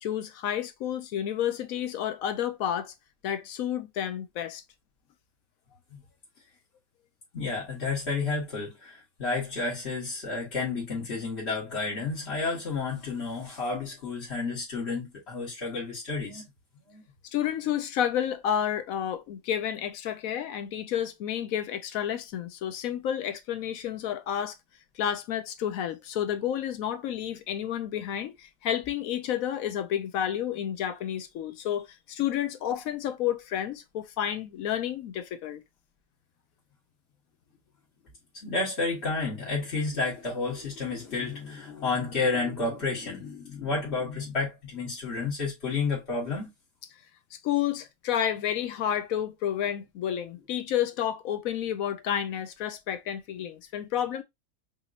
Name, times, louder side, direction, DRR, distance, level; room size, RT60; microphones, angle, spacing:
voice 1, 0.0-2.9 3.2-4.6 17.3-24.5 25.0-35.6 47.4-54.2, left 10 dB, 75° left, 1.0 m, -30 dB
voice 2, 7.3-16.4 16.9-17.0 38.4-46.5, left 3 dB, 50° left, 1.6 m, -31 dB
5.1 x 2.9 x 2.5 m
omnidirectional pair, 1.5 m